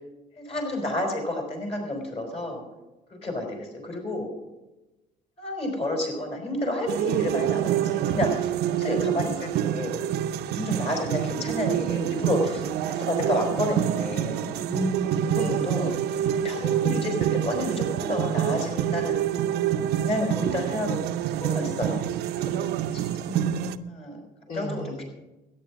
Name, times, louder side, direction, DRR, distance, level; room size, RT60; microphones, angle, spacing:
voice 1, 0.4-2.6 3.1-4.3 5.4-9.9 10.4-14.6 15.2-15.9 16.3-19.3 19.9-21.0 21.4-22.0 22.3-23.1 23.9-25.0, left 1 dB, 35° left, 2 dB, 5.1 m, -30 dB
sound 1, 6.9-23.8, right 11 dB, 75° right, 0.6 m, -27 dB
voice 2, 14.7-15.7 23.3-23.7 24.5-25.0, right 1 dB, 60° left, -2 dB, 2.8 m, -31 dB
13.5 x 9.8 x 6.3 m, 1.0 s
cardioid pair, 110°, 17 cm